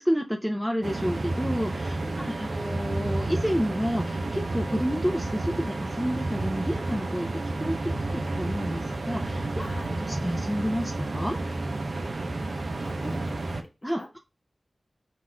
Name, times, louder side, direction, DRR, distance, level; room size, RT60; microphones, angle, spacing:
voice 1, 0.0-7.8 8.1-9.7 10.0-11.4 13.8-14.2, equal, ahead, 3 dB, 0.5 m, -30 dB
sound 1, 0.8-13.6, right 2 dB, 65° right, 0.5 m, -31 dB
voice 2, 2.0-2.4 9.6-10.0 12.5-12.6 12.8-14.1, left 2 dB, 40° left, 4 dB, 0.9 m, -44 dB
4.0 x 2.5 x 4.3 m, 0.28 s
wide cardioid pair, 65°, 0 cm